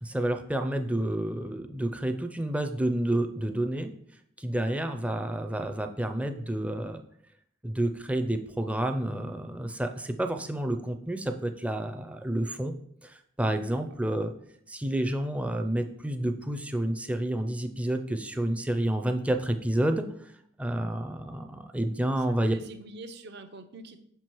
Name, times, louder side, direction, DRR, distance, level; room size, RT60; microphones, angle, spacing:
voice 1, 0.0-3.9 4.4-7.0 7.6-12.7 13.0-14.3 14.7-20.3 20.6-22.5, right 1 dB, 5° right, 7 dB, 0.4 m, -29 dB
voice 2, 22.3-24.0, right 2 dB, 60° right, 9 dB, 0.6 m, -44 dB
6.3 x 4.6 x 4.5 m, 0.69 s
head